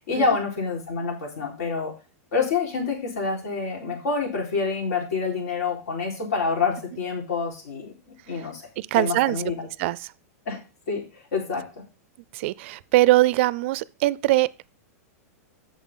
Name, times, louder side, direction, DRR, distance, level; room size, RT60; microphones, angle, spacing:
voice 1, 0.1-1.9 2.3-8.6 8.9-9.7 10.5-10.6 10.9-11.6, left 5 dB, 80° left, 4.2 m, -27 dB
voice 2, 8.8-9.4 9.8-10.0 12.3-14.7, right 17 dB, 50° right, 0.3 m, -22 dB
8.7 x 6.6 x 3.8 m
supercardioid pair, 155°, 9 cm